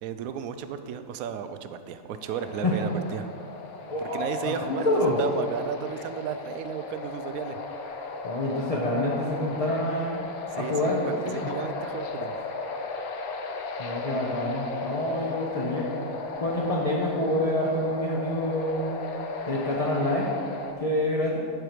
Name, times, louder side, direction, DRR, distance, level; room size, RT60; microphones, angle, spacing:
voice 1, 0.0-3.3 4.0-4.9 5.2-7.6 10.5-12.4, right 8 dB, 75° right, 10 dB, 1.0 m, -34 dB
sound 1, 2.2-20.7, left 3 dB, 75° left, 1.2 m, -36 dB
voice 2, 3.9-5.2 8.2-10.2 10.6-11.5 13.8-15.9 16.4-19.0 19.5-20.3 20.8-21.4, left 1 dB, 30° left, -4 dB, 0.8 m, -27 dB
11.5 x 4.6 x 4.9 m, 2.4 s
omnidirectional pair, 1.5 m